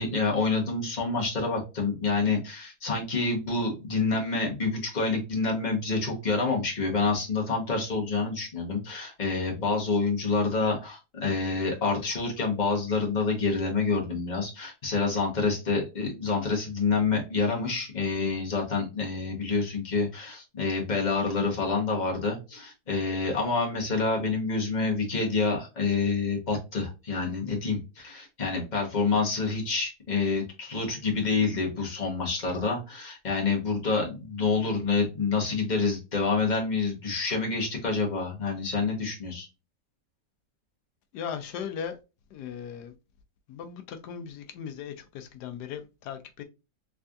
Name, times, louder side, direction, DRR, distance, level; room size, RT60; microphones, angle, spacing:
voice 1, 0.0-39.5, left 4 dB, 30° left, 1.3 m, -27 dB
voice 2, 41.1-42.0 42.3-42.9 43.5-46.4, left 8 dB, 85° left, 1.2 m, -38 dB
3.6 x 3.3 x 2.5 m
omnidirectional pair, 1.7 m